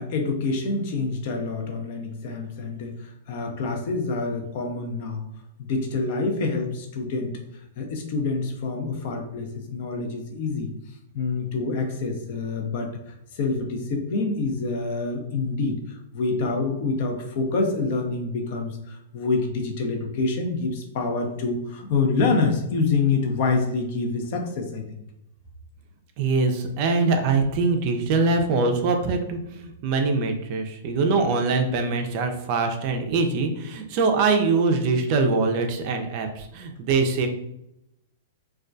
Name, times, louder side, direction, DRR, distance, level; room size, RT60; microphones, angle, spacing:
voice 1, 0.0-5.3 5.6-7.4 7.8-10.7 11.1-25.0, left 3 dB, 55° left, 4 dB, 0.5 m, -27 dB
voice 2, 26.2-37.3, right 3 dB, 45° right, 5 dB, 0.4 m, -23 dB
2.2 x 2.2 x 2.5 m, 0.83 s
hypercardioid pair, 120°, 0 cm